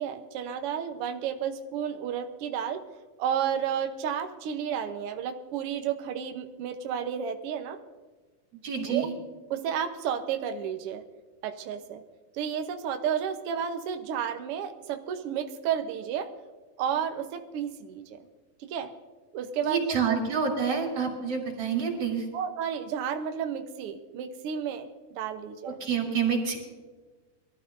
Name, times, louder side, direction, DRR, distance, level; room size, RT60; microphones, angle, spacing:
voice 1, 0.0-2.8 3.2-7.8 8.8-9.1 9.5-11.0 11.4-12.0 12.3-16.3 16.8-18.2 18.6-18.9 19.3-20.2 22.3-25.8, right 8 dB, 85° right, 6 dB, 1.3 m, -32 dB
voice 2, 8.6-9.1 19.7-22.2 25.6-26.6, right 6 dB, 50° right, 0 dB, 3.9 m, -28 dB
22.5 x 13.5 x 2.6 m, 1.3 s
omnidirectional pair, 3.9 m